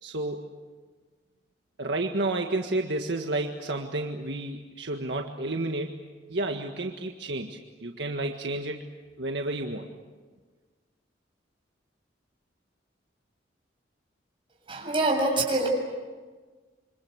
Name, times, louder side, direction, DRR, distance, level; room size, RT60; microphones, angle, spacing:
voice 1, 0.0-0.5 1.8-8.9 9.2-9.9, right 2 dB, 70° right, 3 dB, 1.7 m, -31 dB
voice 2, 14.7-15.7, right 2 dB, 30° right, 0 dB, 7.3 m, -25 dB
27.5 x 25.5 x 8.1 m, 1.4 s
head